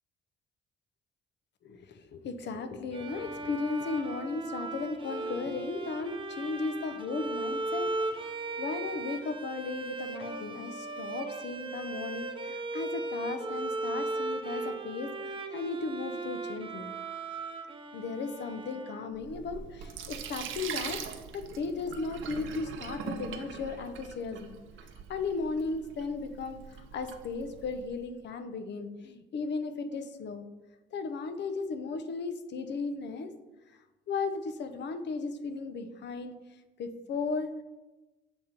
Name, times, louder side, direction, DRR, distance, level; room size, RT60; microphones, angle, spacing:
voice 1, 1.6-17.0 17.9-24.5 25.1-30.5 30.9-33.3 33.7-33.8 34.1-36.3 36.8-37.5, left 4 dB, 60° left, 9 dB, 0.7 m, -36 dB
Bowed string instrument, 2.9-19.5, right 2 dB, 25° right, 0.6 m, -37 dB
Sink (filling or washing), 19.1-27.9, right 7 dB, 80° right, 0.7 m, -42 dB
7.1 x 3.0 x 5.1 m, 1.1 s
cardioid pair, 90°, 20 cm